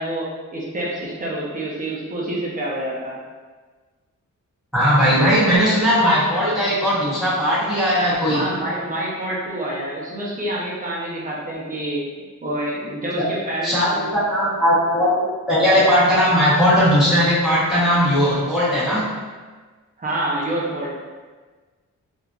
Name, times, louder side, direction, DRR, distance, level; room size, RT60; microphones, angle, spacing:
voice 1, 0.0-3.2 8.3-12.0 12.4-14.1 20.0-20.9, right 1 dB, 25° right, -5 dB, 0.6 m, -27 dB
voice 2, 4.7-8.4 13.2-13.3 13.6-19.1, equal, ahead, -11 dB, 0.9 m, -18 dB
3.3 x 2.5 x 2.3 m, 1.4 s
wide cardioid pair, 150°, 31 cm